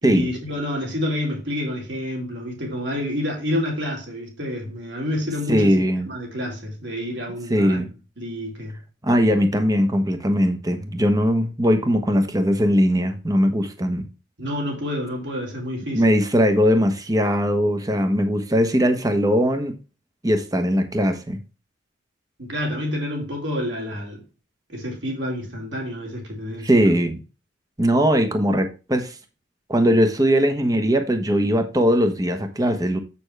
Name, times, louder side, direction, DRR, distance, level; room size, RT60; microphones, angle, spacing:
voice 1, 0.0-5.7 6.1-7.8 8.2-8.8 14.4-16.2 22.4-24.2 24.7-26.7, left 1 dB, 65° right, 4.2 m, -28 dB
voice 2, 5.5-6.1 7.5-7.9 9.0-14.1 15.9-19.7 20.2-21.4 26.6-27.2 27.8-29.2 29.7-33.0, equal, 20° right, 1.1 m, -20 dB
7.9 x 7.0 x 3.3 m
head